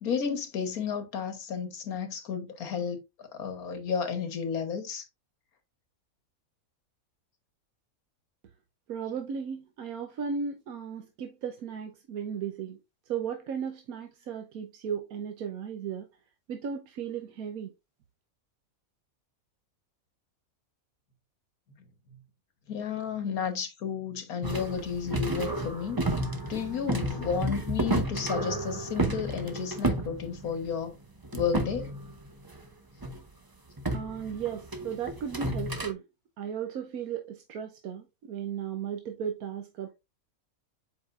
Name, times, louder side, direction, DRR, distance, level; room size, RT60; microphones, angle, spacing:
voice 1, 0.0-5.1 22.7-26.0 26.5-30.9 31.3-31.9, left 6 dB, 85° left, 1.7 m, -32 dB
voice 2, 8.9-12.8 13.1-16.1 16.5-17.7 33.9-36.0 36.4-39.9, right 7 dB, 85° right, 1.3 m, -35 dB
sound 1, 24.4-30.9 31.2-32.6 33.0-33.2 33.8-35.9, right 2 dB, 20° right, 0.6 m, -32 dB
7.9 x 5.0 x 2.5 m
omnidirectional pair, 1.5 m